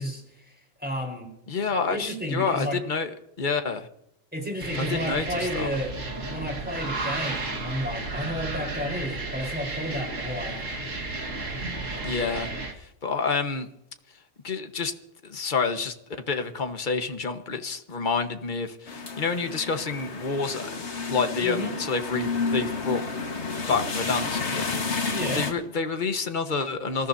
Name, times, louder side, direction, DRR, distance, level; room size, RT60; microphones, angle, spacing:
voice 1, 0.0-1.3 1.9-2.8 4.3-6.0 6.3-10.6 21.4-21.7 25.1-25.5, equal, 5° right, 1 dB, 4.3 m, -32 dB
voice 2, 1.5-3.1 3.4-3.9 4.8-5.7 12.0-12.5 12.8-13.7 14.4-14.9 15.2-15.9 16.3-20.7 21.1-23.0 23.7-24.8 25.3-27.1, left 5 dB, 40° left, 7 dB, 1.5 m, -28 dB
sound 1, 4.6-12.7, right 2 dB, 75° right, 2.4 m, -33 dB
sound 2, 18.9-25.5, left 4 dB, 60° left, 2.0 m, -30 dB
27.0 x 14.5 x 2.8 m, 0.78 s
omnidirectional pair, 1.3 m